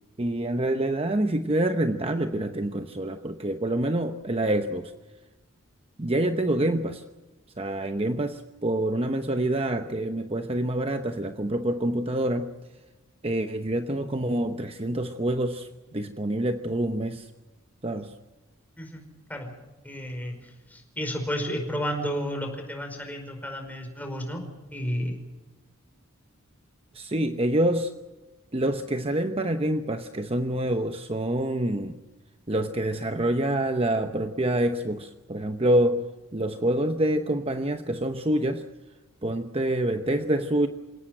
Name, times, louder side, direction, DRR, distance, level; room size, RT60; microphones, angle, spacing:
voice 1, 0.2-4.9 6.0-7.0 7.6-12.5 13.2-17.3 17.8-18.1 26.9-27.9 28.5-32.0 32.5-38.7 39.2-40.7, right 1 dB, 25° right, 7 dB, 0.9 m, -26 dB
voice 2, 19.8-20.4 20.7-24.4 24.7-25.2, equal, 10° left, 3 dB, 5.1 m, -31 dB
28.0 x 18.0 x 7.7 m, 1.2 s
head